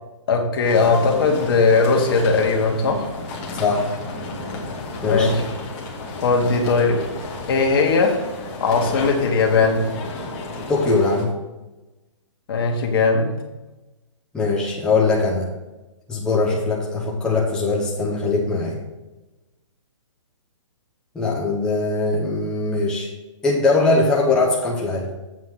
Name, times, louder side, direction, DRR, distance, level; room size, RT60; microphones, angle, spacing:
voice 1, 0.3-3.1 5.0-5.4 6.2-7.0 7.5-8.2 8.6-9.9 12.5-13.3, left 4 dB, 50° left, 2 dB, 1.6 m, -18 dB
sound 1, 0.6-11.2, left 2 dB, 25° left, 1.2 m, -32 dB
voice 2, 3.5-3.9 5.0-5.3 10.7-11.3 14.3-15.5 16.1-18.8 21.1-23.1 23.4-25.1, left 3 dB, 5° left, -4 dB, 0.8 m, -21 dB
7.6 x 4.5 x 6.4 m, 1.1 s
hypercardioid pair, 160°, 16 cm